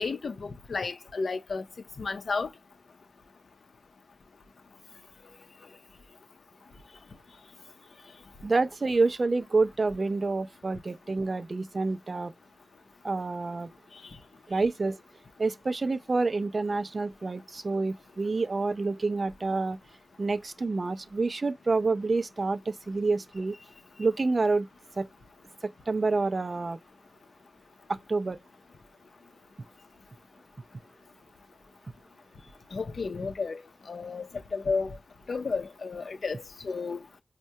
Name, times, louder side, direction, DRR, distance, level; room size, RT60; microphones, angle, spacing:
voice 1, 0.0-1.6 2.0-2.5 32.7-33.6 33.9-35.0 35.3-36.4 36.6-37.0, left 4 dB, 80° left, 0.5 m, -32 dB
voice 2, 8.4-12.3 13.0-13.7 14.5-15.0 15.4-19.8 20.2-23.6 24.0-24.7 25.0-25.1 25.6-26.8 27.9-28.4, right 3 dB, 55° right, 0.3 m, -28 dB
4.5 x 2.1 x 2.7 m
wide cardioid pair, 65°, 0 cm